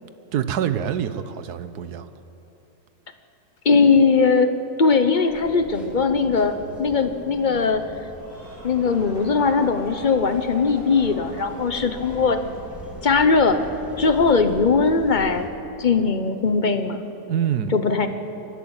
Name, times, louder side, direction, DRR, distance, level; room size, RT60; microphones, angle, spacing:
voice 1, 0.3-2.1 17.3-17.8, right 9 dB, 75° right, 12 dB, 1.4 m, -25 dB
voice 2, 3.6-4.5 4.8-7.8 8.6-12.6 13.0-13.6 14.0-15.5 15.8-17.0 17.7-18.1, left 4 dB, 35° left, 9 dB, 0.9 m, -19 dB
sound 1, 5.3-15.5, right 1 dB, ahead, 3.4 m, -41 dB
sound 2, 8.0-13.0, left 1 dB, 30° right, 5.2 m, -43 dB
23.5 x 12.5 x 9.0 m, 2.9 s
omnidirectional pair, 1.8 m